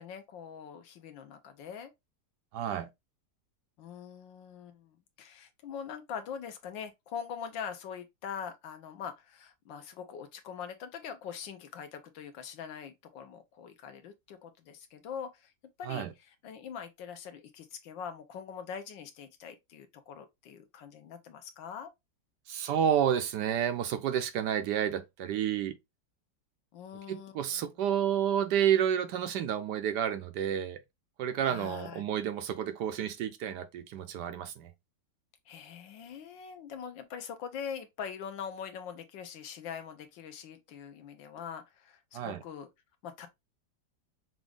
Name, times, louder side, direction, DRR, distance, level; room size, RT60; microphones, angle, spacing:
voice 1, 0.0-1.9 3.8-15.5 15.8-21.9 26.7-27.7 31.4-32.0 35.5-42.7 43.0-43.3, left 7 dB, 85° left, 1.6 m, -43 dB
voice 2, 2.5-2.9 15.8-16.1 22.5-25.8 27.1-30.8 31.2-34.7 42.1-42.4, right 9 dB, 75° right, 1.1 m, -30 dB
6.0 x 2.5 x 3.4 m
omnidirectional pair, 2.0 m